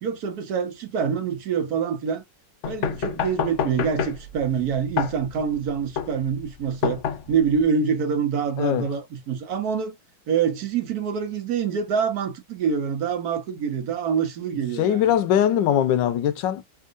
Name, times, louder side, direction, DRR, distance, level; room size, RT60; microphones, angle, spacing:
voice 1, 0.0-2.2 2.7-7.0 7.3-9.9 10.3-15.1, right 6 dB, 65° right, 1.1 m, -25 dB
sound 1, 2.6-7.6, left 7 dB, 65° left, 0.7 m, -28 dB
voice 2, 8.6-8.9 14.8-16.6, left 10 dB, 90° left, 1.3 m, -21 dB
3.5 x 2.6 x 2.4 m
omnidirectional pair, 1.9 m